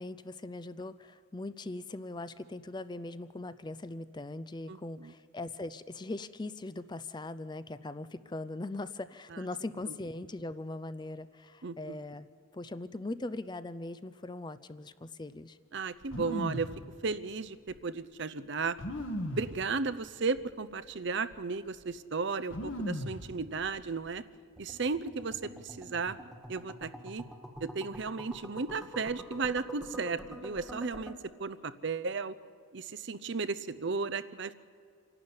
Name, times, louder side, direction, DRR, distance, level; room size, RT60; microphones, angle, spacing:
voice 1, 0.0-12.3 12.5-15.6, left 2 dB, 20° left, 14 dB, 0.5 m, -40 dB
voice 2, 4.7-5.1 9.3-9.4 11.6-12.0 15.7-16.7 17.0-18.8 19.3-24.2 24.6-26.2 26.5-27.2 27.6-31.1 31.4-32.4 32.7-34.5, right 4 dB, 55° right, 13 dB, 0.7 m, -34 dB
sound 1, 16.0-16.8 17.7-17.8 18.8-19.6 20.4-20.5 20.8-21.3 22.5-23.3 23.6-24.1, equal, 65° left, 1.6 m, -37 dB
sound 2, 24.6-31.1, equal, ahead, 1.5 m, -46 dB
27.0 x 12.0 x 9.7 m, 2.2 s
head